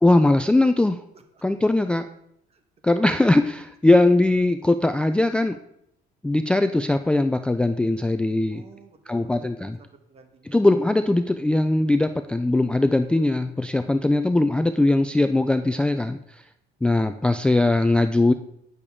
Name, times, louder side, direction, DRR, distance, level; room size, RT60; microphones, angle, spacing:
voice 1, 0.0-1.0 1.4-2.1 2.8-5.6 6.2-8.6 9.1-9.8 10.4-16.4 16.8-18.3, left 2 dB, 5° left, 9 dB, 0.3 m, -20 dB
voice 2, 8.5-10.6, right 5 dB, 35° right, 6 dB, 1.4 m, -52 dB
10.0 x 6.8 x 3.6 m, 0.76 s
cardioid pair, 110°, 17 cm